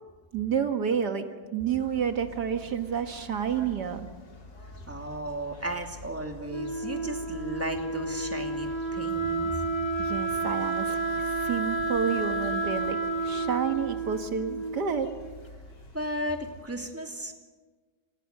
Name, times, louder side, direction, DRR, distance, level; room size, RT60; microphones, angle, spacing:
voice 1, 0.3-1.3 1.5-4.1 10.0-13.0 13.2-15.1, right 7 dB, 70° right, 7 dB, 2.0 m, -29 dB
sound 1, 1.8-16.6, left 1 dB, 90° left, 4.1 m, -47 dB
voice 2, 4.9-9.7 12.2-12.3 15.9-17.3, right 1 dB, 10° right, 3 dB, 2.5 m, -35 dB
Wind instrument woodwind instrument, 6.5-15.2, right 3 dB, 20° left, 1.0 m, -31 dB
29.0 x 27.0 x 6.6 m, 1.4 s
omnidirectional pair, 1.9 m